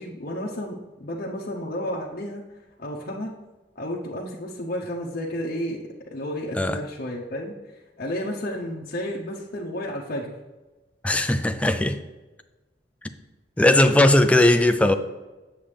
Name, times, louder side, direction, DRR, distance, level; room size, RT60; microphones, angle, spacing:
voice 1, 0.0-2.4 2.8-3.3 3.8-7.5 8.0-10.3, equal, 55° left, 0.8 m, -32 dB
voice 2, 11.0-12.0 13.6-14.9, left 1 dB, 5° left, 0.4 m, -18 dB
7.3 x 7.2 x 3.4 m
head